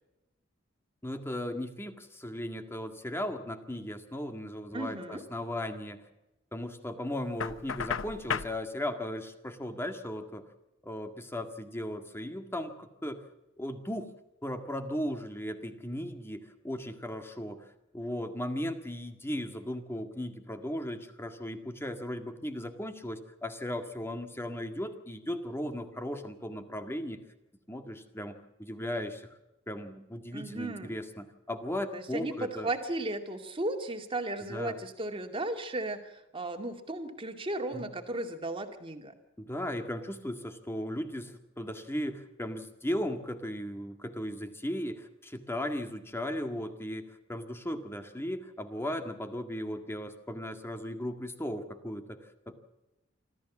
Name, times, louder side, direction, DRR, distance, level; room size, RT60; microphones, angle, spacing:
voice 1, 1.0-6.0 6.5-10.4 10.8-13.2 13.6-14.1 14.4-17.7 17.9-27.2 27.7-29.3 29.7-32.7 34.5-34.8 37.7-37.8 39.4-52.2 52.5-52.6, left 1 dB, 10° left, 7 dB, 1.9 m, -36 dB
voice 2, 4.7-5.2 30.3-30.9 31.9-39.1, right 2 dB, 25° right, 5 dB, 2.3 m, -35 dB
Knock, 7.4-8.6, left 6 dB, 80° left, 0.9 m, -33 dB
26.0 x 14.0 x 7.3 m, 0.96 s
head